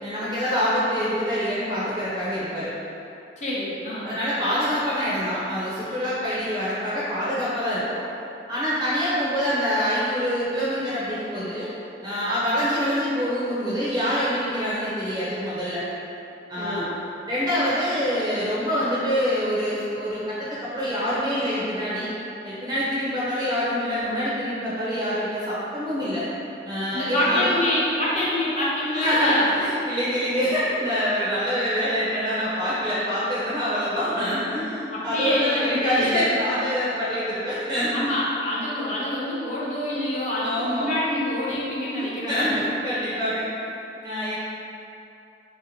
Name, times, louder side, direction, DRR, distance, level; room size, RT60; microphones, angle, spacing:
voice 1, 0.0-2.7 4.0-8.0 8.5-11.7 12.0-15.9 16.5-16.9 17.3-22.1 22.4-26.3 26.6-27.6 28.9-38.1 40.4-41.0 41.9-43.5 44.0-44.3, equal, 20° right, -9 dB, 0.5 m, -25 dB
voice 2, 3.4-4.1 16.6-17.0 26.9-29.5 34.9-36.2 37.9-42.6, left 1 dB, 40° left, -7 dB, 0.7 m, -26 dB
3.3 x 2.6 x 4.2 m, 2.8 s
head